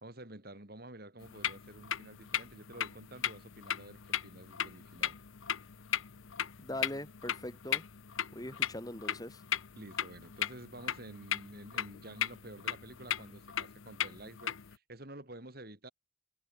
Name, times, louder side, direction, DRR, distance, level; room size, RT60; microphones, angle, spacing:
voice 1, 0.0-5.2 9.8-15.9, right 1 dB, 50° right, 4.1 m, -50 dB
sound 1, 1.2-14.8, left 10 dB, 85° left, 0.9 m, -38 dB
voice 2, 6.6-7.9 8.3-9.4, left 1 dB, 20° left, 3.6 m, -41 dB
head